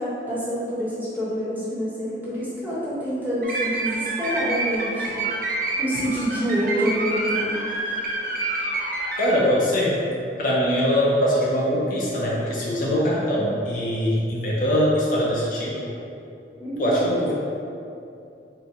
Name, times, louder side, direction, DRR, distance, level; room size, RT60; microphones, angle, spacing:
voice 1, 0.0-5.1 5.7-7.5 16.6-17.1, equal, 10° right, -10 dB, 1.0 m, -27 dB
sound 1, 3.4-9.4, right 2 dB, 50° right, 0.5 m, -28 dB
voice 2, 9.2-10.0 10.4-15.9 16.8-17.3, equal, 50° left, -5 dB, 0.5 m, -22 dB
4.4 x 2.2 x 3.9 m, 2.6 s
head